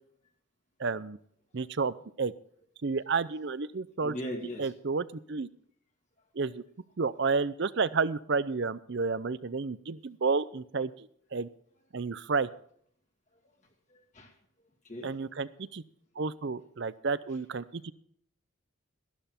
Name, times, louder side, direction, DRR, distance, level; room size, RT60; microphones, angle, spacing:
voice 1, 0.8-1.2 1.5-2.3 2.8-4.1 4.6-5.5 6.3-6.6 7.0-11.5 11.9-12.5 15.0-15.8 16.2-17.9, right 4 dB, 55° right, 17 dB, 0.6 m, -31 dB
voice 2, 4.0-4.7 6.4-6.5 13.3-13.4 13.9-14.3 14.8-15.4, equal, 35° left, 2 dB, 1.9 m, -40 dB
13.5 x 12.0 x 4.3 m, 0.63 s
head